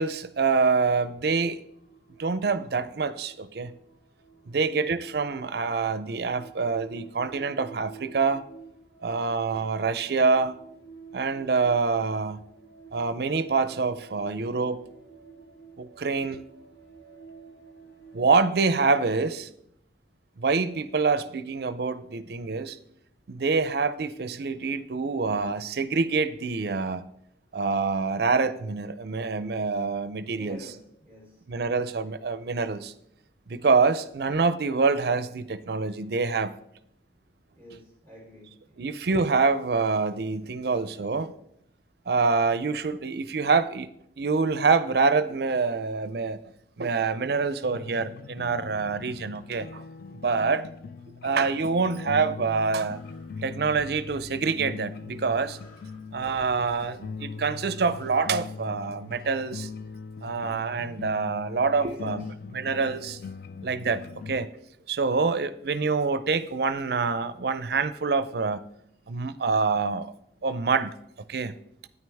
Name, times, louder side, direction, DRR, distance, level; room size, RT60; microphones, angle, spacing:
voice 1, 0.0-1.6 2.2-3.7 4.5-8.4 9.0-10.6 11.1-12.4 12.9-14.8 15.8-16.4 18.1-19.5 20.4-22.8 23.3-27.0 27.5-30.6 31.5-32.9 33.5-36.5 38.8-41.3 42.1-46.4 46.8-49.8 50.2-50.7 51.2-53.0 53.4-55.6 56.1-59.7 60.2-62.2 62.5-63.2 63.6-64.0 64.3-64.5 64.9-68.6 69.1-70.1 70.4-70.9 71.3-71.5, right 4 dB, 55° right, 14 dB, 0.5 m, -26 dB
sound 1, 1.2-19.2, right 5 dB, 70° left, 1.8 m, -50 dB
voice 2, 30.4-31.4 37.6-38.8 50.3-50.5 61.7-62.3, equal, 15° left, -4 dB, 3.7 m, -47 dB
sound 2, 47.6-64.5, left 4 dB, 50° left, 0.3 m, -41 dB
sound 3, 52.3-58.3, left 1 dB, 85° left, 2.5 m, -55 dB
9.4 x 9.0 x 3.4 m, 0.74 s
head